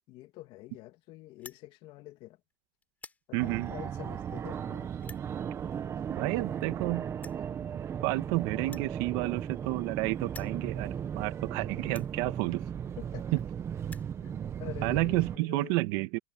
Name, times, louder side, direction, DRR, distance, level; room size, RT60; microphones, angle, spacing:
voice 1, 0.1-2.4 3.3-5.1 13.0-13.2 14.2-15.8, left 17 dB, 30° left, 2.4 m, -47 dB
sound 1, 1.3-1.6 2.3-2.5 2.8-3.2 4.0-4.1 5.0-5.3 6.3-6.4 6.6-6.7 7.2-7.4 8.6-9.9 10.2-10.6 11.3-11.4 11.9-12.1 13.0-13.1 13.4-13.5 13.7-14.1, left 4 dB, 10° left, 3.9 m, -50 dB
voice 2, 3.3-3.7 6.1-7.1 8.0-12.6 13.3-13.4 14.8-16.2, right 21 dB, 40° right, 1.9 m, -30 dB
Fixed-wing aircraft airplane, 3.4-15.4, right 8 dB, 15° right, 1.3 m, -36 dB
supercardioid pair, 160°, 16 cm